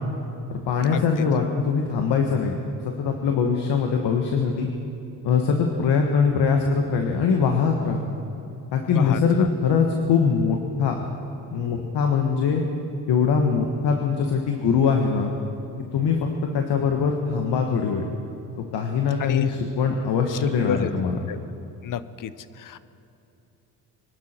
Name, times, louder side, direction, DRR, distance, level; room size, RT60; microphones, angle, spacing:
voice 1, 0.5-2.5 3.0-4.7 5.2-8.1 8.7-11.0 11.5-12.6 13.1-15.3 15.9-16.2 16.5-18.0 18.7-21.2, left 5 dB, 70° left, 3 dB, 1.5 m, -22 dB
voice 2, 8.9-9.5 19.2-19.5 20.3-20.4 20.6-20.9 21.3-21.4 21.8-22.3 22.6-22.8, left 10 dB, 50° left, 14 dB, 0.7 m, -29 dB
25.0 x 11.5 x 4.5 m, 2.9 s
cardioid pair, 105°, 43 cm